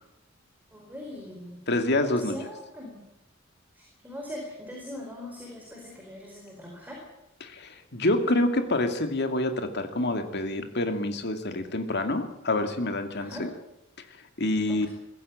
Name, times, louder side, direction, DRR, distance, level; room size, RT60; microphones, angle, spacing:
voice 1, 0.7-1.6 2.0-3.0 3.7-7.0 13.2-13.5 14.7-14.9, left 1 dB, 10° right, 0 dB, 4.6 m, -41 dB
voice 2, 1.7-2.4 7.4-13.5 14.4-14.9, left 2 dB, 55° left, 6 dB, 2.5 m, -27 dB
22.0 x 15.0 x 8.8 m, 0.90 s
head